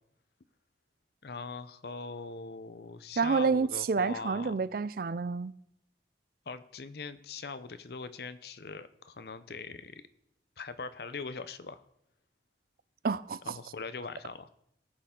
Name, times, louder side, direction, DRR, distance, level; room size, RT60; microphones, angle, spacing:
voice 1, 1.2-4.6 6.5-10.0 10.6-11.8 13.4-14.5, left 4 dB, 60° left, 0.6 m, -41 dB
voice 2, 3.2-5.5 13.0-13.6, right 5 dB, 50° right, 0.4 m, -29 dB
18.5 x 6.8 x 3.7 m
head